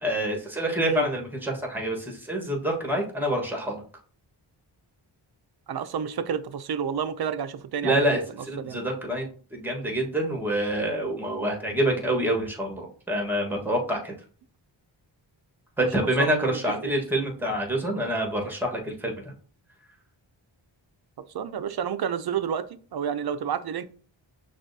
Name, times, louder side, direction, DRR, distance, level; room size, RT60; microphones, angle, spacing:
voice 1, 0.0-3.8 7.8-8.2 8.5-9.2 9.5-14.1 15.8-19.1, right 1 dB, 5° right, 1.3 m, -27 dB
voice 2, 5.7-8.1 8.4-8.8 15.8-15.9 16.2-16.9 21.3-23.8, right 8 dB, 55° right, 0.5 m, -30 dB
5.9 x 2.4 x 2.7 m
cardioid pair, 65°, 48 cm